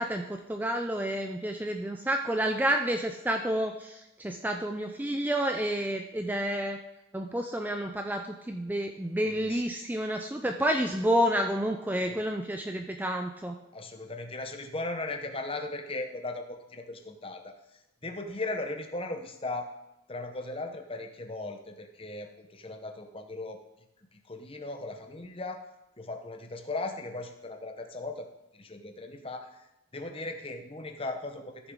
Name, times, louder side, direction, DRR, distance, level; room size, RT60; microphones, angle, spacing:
voice 1, 0.0-6.8 7.1-13.6, right 1 dB, 10° right, 4 dB, 0.4 m, -30 dB
voice 2, 9.2-9.6 10.4-10.6 12.1-12.2 13.7-19.7 20.1-23.6 24.1-25.7 26.0-28.3 28.5-29.6 29.9-31.7, left 2 dB, 25° left, 5 dB, 0.8 m, -38 dB
14.0 x 7.0 x 3.7 m, 0.90 s
head